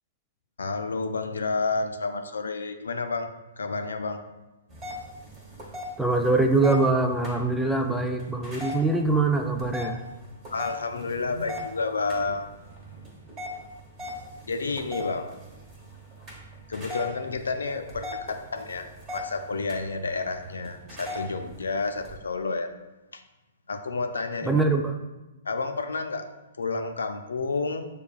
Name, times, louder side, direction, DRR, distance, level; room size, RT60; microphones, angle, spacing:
voice 1, 0.6-3.3 3.6-4.2 10.5-12.5 14.5-15.3 16.7-18.9 19.1-22.7 23.1-23.2 23.7-24.7 25.5-26.3 26.6-27.9, left 3 dB, 80° left, 7 dB, 0.4 m, -30 dB
sound 1, 4.7-22.2, left 1 dB, 30° right, 1.0 m, -40 dB
voice 2, 6.0-10.0 24.4-24.9, right 3 dB, 5° right, 3 dB, 0.3 m, -23 dB
6.8 x 2.3 x 2.4 m, 1.0 s
hypercardioid pair, 120°, 0 cm